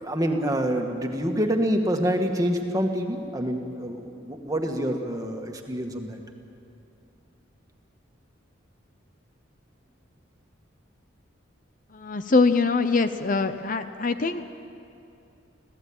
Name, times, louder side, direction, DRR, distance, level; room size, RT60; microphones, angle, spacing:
voice 1, 0.0-6.2, equal, 20° right, 3 dB, 1.8 m, -26 dB
voice 2, 11.9-14.4, left 4 dB, 40° left, 10 dB, 0.7 m, -23 dB
26.0 x 17.0 x 8.8 m, 2.7 s
head